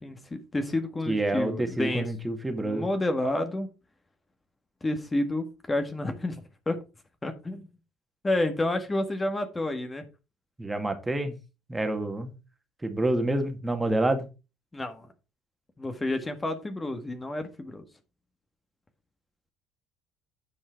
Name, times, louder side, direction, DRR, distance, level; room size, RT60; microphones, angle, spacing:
voice 1, 0.0-2.1 2.5-3.7 4.8-6.8 7.2-7.7 8.2-10.1 14.7-15.1 15.8-17.8, left 1 dB, 20° left, 7 dB, 1.6 m, -30 dB
voice 2, 1.1-2.9 10.6-11.3 11.7-12.4 12.8-14.3, right 1 dB, 15° right, 6 dB, 2.2 m, -28 dB
9.7 x 5.5 x 4.5 m, 0.29 s
hypercardioid pair, 60°, 0 cm